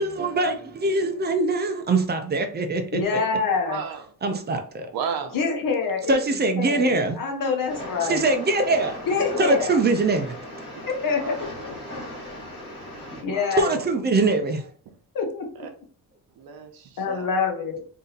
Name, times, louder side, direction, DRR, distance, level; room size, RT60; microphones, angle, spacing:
voice 1, 0.0-3.0 4.2-4.9 6.1-7.2 8.1-8.9 9.4-10.4 13.6-14.7, right 3 dB, 30° right, 0.5 m, -23 dB
voice 2, 2.9-3.8 5.3-8.2 9.1-9.8 10.8-11.8 13.2-13.7 15.1-15.7 17.0-17.8, left 5 dB, 65° left, 1.1 m, -26 dB
voice 3, 3.7-4.0 4.9-5.4 9.3-9.6 11.1-11.4 13.2-13.9 14.2-14.3 15.6-15.7 16.4-17.3, right 6 dB, 80° right, 0.9 m, -34 dB
Train, 7.7-13.2, left 1 dB, 15° left, 2.0 m, -37 dB
3.9 x 2.7 x 3.9 m
wide cardioid pair, 175°, 36 cm